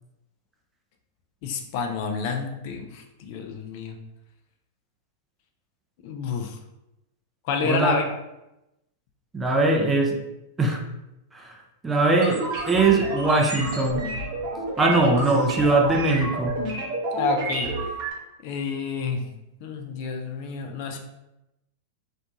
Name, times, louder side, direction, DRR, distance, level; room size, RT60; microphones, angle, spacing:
voice 1, 1.4-4.0 6.0-6.6 7.4-8.1 17.1-17.7 18.4-19.3 19.6-21.0, left 5 dB, 50° left, 4 dB, 0.3 m, -29 dB
voice 2, 9.3-10.2 10.6-10.8 11.3-11.6 11.8-14.1 14.8-16.6, right 2 dB, 15° right, 1 dB, 0.5 m, -21 dB
sound 1, 12.2-18.1, right 2 dB, 50° right, 0.7 m, -30 dB
2.5 x 2.2 x 2.7 m, 0.91 s
figure-of-eight pair, 95°, 0 cm